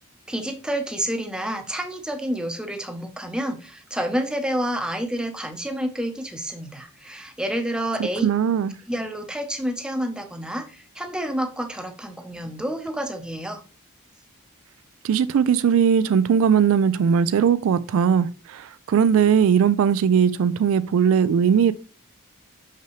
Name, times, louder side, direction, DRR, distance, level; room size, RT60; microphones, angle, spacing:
voice 1, 0.3-8.3 8.9-13.6, equal, 5° right, 0.8 m, -29 dB
voice 2, 8.0-8.7 15.0-21.7, right 7 dB, 65° right, 0.3 m, -19 dB
6.0 x 5.7 x 3.1 m
head